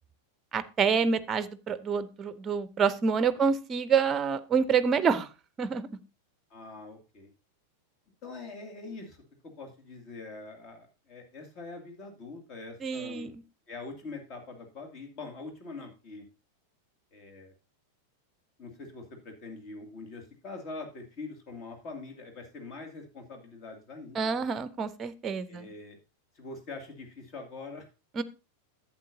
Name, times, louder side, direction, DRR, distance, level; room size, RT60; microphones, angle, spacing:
voice 1, 0.5-5.3 5.6-5.9 12.8-13.3 24.1-25.7 28.2-28.3, right 6 dB, 25° right, 15 dB, 0.6 m, -27 dB
voice 2, 6.5-7.3 8.2-13.3 13.7-16.2 17.1-17.5 18.6-24.4 25.5-26.0 26.4-27.9, left 3 dB, 35° left, 4 dB, 2.4 m, -44 dB
11.5 x 8.1 x 2.7 m, 0.29 s
figure-of-eight pair, 90°, 0 cm